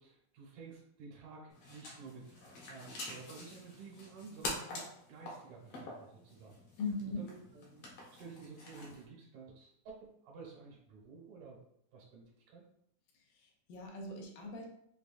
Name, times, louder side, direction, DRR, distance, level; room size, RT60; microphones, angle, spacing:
voice 1, 0.0-2.4 2.7-6.6 7.0-11.6 11.9-12.6, right 4 dB, 75° right, -3 dB, 2.4 m, -52 dB
sound 1, 1.5-9.0, left 2 dB, 70° left, 1.5 m, -46 dB
voice 2, 6.8-7.3 13.1-14.7, left 3 dB, 85° left, 1 dB, 2.3 m, -40 dB
5.9 x 2.2 x 2.5 m, 0.72 s
omnidirectional pair, 3.7 m